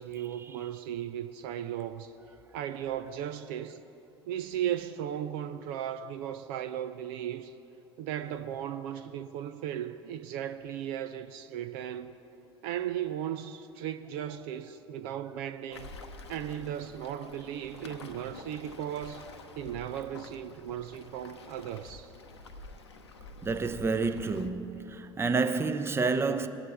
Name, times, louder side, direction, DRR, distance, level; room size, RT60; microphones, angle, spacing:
voice 1, 0.0-2.1 2.5-3.8 4.3-7.5 8.0-12.2 12.6-15.9 16.3-19.2 19.6-22.1, right 10 dB, 60° right, 0.5 m, -36 dB
Waves surf, 15.7-24.5, left 3 dB, 80° left, 0.8 m, -48 dB
voice 2, 23.4-26.5, right 4 dB, 15° right, 0.7 m, -29 dB
20.5 x 8.8 x 3.5 m
figure-of-eight pair, 65°, 14 cm